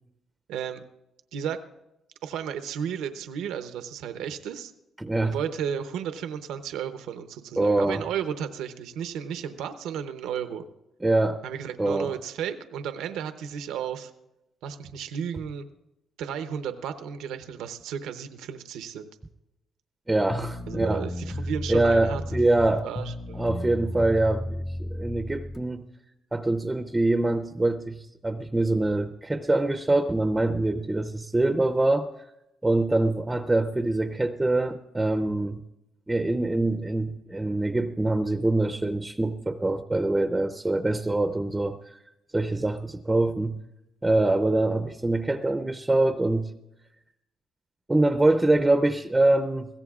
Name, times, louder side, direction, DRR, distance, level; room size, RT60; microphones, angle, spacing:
voice 1, 0.5-0.8 1.3-1.6 2.2-4.7 5.2-10.7 11.4-14.1 14.6-15.7 16.2-19.1 20.7-22.2 22.8-23.4, right 8 dB, 90° right, 9 dB, 0.7 m, -33 dB
voice 2, 5.0-5.4 7.6-8.0 11.0-11.4 11.8-12.1 20.1-21.0 21.7-22.8 23.4-25.8 26.3-32.1 32.6-35.6 36.1-41.9 42.3-43.6 44.0-46.5 47.9-49.7, right 2 dB, 15° right, 8 dB, 0.6 m, -24 dB
sound 1, 20.3-25.6, left 1 dB, 35° left, 1.4 m, -33 dB
22.0 x 16.5 x 2.4 m, 0.91 s
cardioid pair, 90°, 0 cm